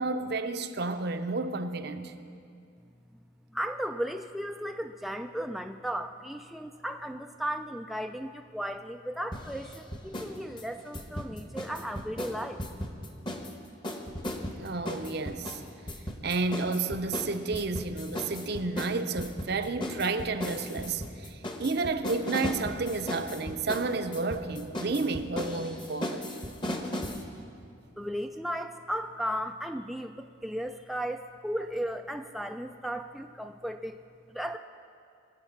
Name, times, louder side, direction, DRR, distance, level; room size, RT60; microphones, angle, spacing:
voice 1, 0.0-2.1 14.6-15.6 16.2-26.3, right 3 dB, 55° right, 0.7 m, -31 dB
voice 2, 3.5-12.6 28.0-34.0 34.3-34.6, equal, ahead, 0.3 m, -35 dB
sound 1, 9.3-10.3 10.6-13.5 13.8-27.2, left 1 dB, 25° left, 1.1 m, -36 dB
21.5 x 8.2 x 5.9 m
head